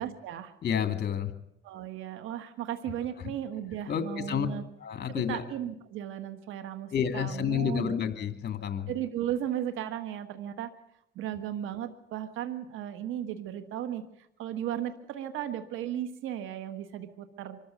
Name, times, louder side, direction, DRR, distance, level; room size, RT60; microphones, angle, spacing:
voice 1, 0.0-0.5 1.6-4.6 5.1-7.9 8.9-10.7 11.1-17.6, right 11 dB, 90° right, 9 dB, 1.6 m, -35 dB
voice 2, 0.6-1.3 3.2-3.3 3.9-4.5 4.8-5.4 6.9-8.9, left 8 dB, 55° left, 8 dB, 2.5 m, -30 dB
24.5 x 14.0 x 9.3 m, 0.75 s
cardioid pair, 90°, 20 cm